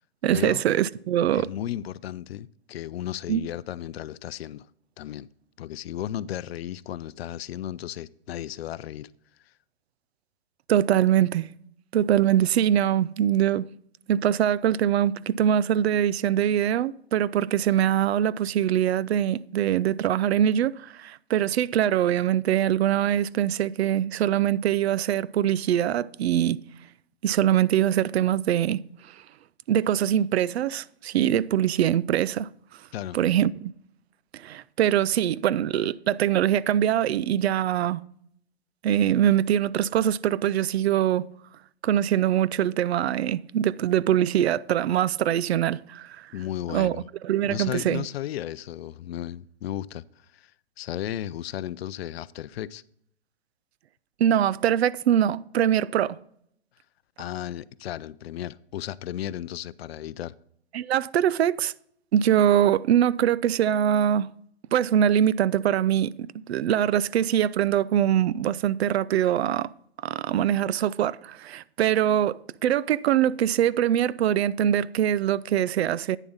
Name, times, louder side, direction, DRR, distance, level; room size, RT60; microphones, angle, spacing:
voice 1, 0.2-1.5 3.3-3.4 10.7-11.5 11.9-13.7 14.1-26.6 27.2-28.8 29.7-32.5 33.1-33.7 34.3-38.0 38.8-41.3 41.8-46.3 46.7-47.0 47.2-48.0 54.2-56.2 60.7-61.7 62.1-64.3 64.7-69.7 70.0-76.2, right 10 dB, 75° right, 0.5 m, -23 dB
voice 2, 1.3-4.7 5.0-5.3 5.6-9.1 9.4-9.5 32.9-33.2 46.3-47.1 47.4-50.5 50.8-52.8 57.2-60.4, left 12 dB, 70° left, 0.5 m, -34 dB
9.2 x 7.0 x 3.9 m
hypercardioid pair, 145°, 32 cm